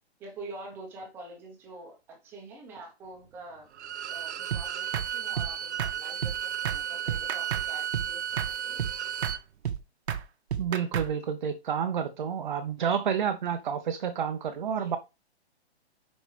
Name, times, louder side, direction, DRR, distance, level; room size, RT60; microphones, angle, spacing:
voice 1, 0.2-3.7 4.1-8.9 14.8-15.0, right 2 dB, 5° right, 0.9 m, -46 dB
Bowed string instrument, 3.7-9.4, right 9 dB, 90° right, 0.6 m, -34 dB
sound 1, 4.5-4.6 4.9-5.1 5.4-5.5 5.8-5.9 6.2-6.4 6.6-6.8 7.1-7.7 7.9-8.1 8.4-8.5 8.8-8.9 9.2-9.4 9.6-9.8 10.1-10.2 10.5-11.1, right 9 dB, 70° right, 1.0 m, -31 dB
voice 2, 10.6-15.0, right 7 dB, 45° right, 0.6 m, -29 dB
6.7 x 5.3 x 3.3 m
hypercardioid pair, 170°, 33 cm